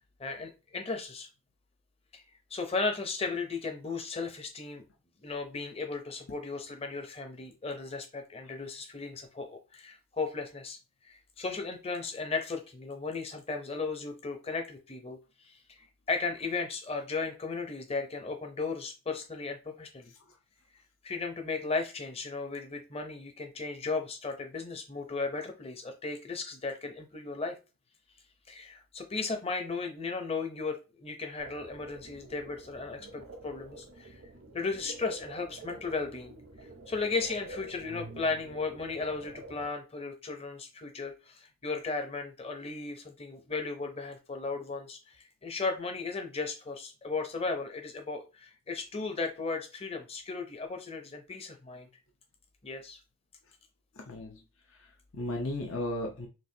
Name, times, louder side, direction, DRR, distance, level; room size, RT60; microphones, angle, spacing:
voice 1, 0.2-1.3 2.1-2.2 2.5-4.8 5.2-10.8 11.0-15.2 15.4-15.6 16.1-20.1 21.0-27.6 28.5-34.1 34.5-36.4 36.9-51.9 52.6-53.0, left 4 dB, 30° left, 5 dB, 0.7 m, -35 dB
sound 1, 31.4-39.7, right 2 dB, 85° right, 1.0 m, -48 dB
voice 2, 53.9-54.4 54.7-56.3, left 1 dB, 70° left, 0 dB, 0.8 m, -36 dB
6.1 x 2.5 x 2.8 m, 0.30 s
head